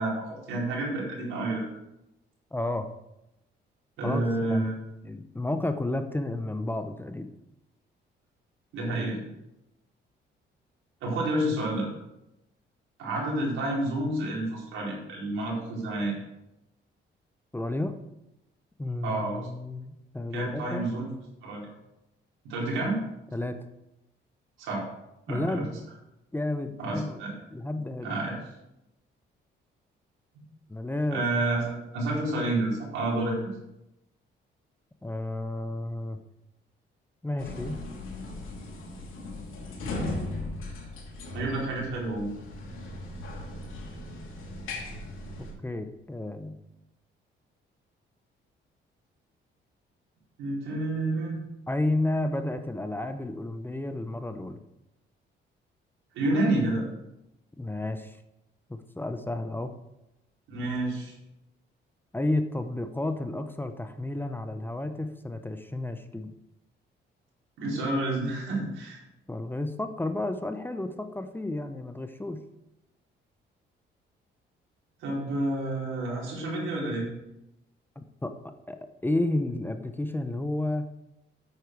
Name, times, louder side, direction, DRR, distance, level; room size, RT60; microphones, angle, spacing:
voice 1, 0.0-1.7 4.0-4.7 8.7-9.2 11.0-11.9 13.0-16.2 19.0-19.4 20.3-21.1 21.4-21.6 22.4-23.0 24.6-24.9 25.3-25.6 26.8-27.3 28.0-28.3 31.1-33.5 41.3-42.3 50.4-51.4 56.1-56.8 60.5-61.1 67.6-69.0 75.0-77.1, right 2 dB, 85° right, -4 dB, 4.5 m, -29 dB
voice 2, 2.5-2.9 4.0-4.7 5.0-7.3 17.5-18.0 18.8-20.9 23.3-23.6 25.3-25.7 26.3-27.2 27.5-28.1 30.7-31.2 35.0-36.2 37.2-37.8 45.6-46.6 51.7-54.6 57.6-58.2 58.7-59.7 62.1-66.3 69.3-72.4 78.0-80.9, left 2 dB, 10° left, 8 dB, 0.7 m, -31 dB
sound 1, 37.4-45.5, left 2 dB, 85° left, 2.8 m, -38 dB
9.2 x 8.2 x 4.7 m, 0.89 s
cardioid pair, 90°, 20 cm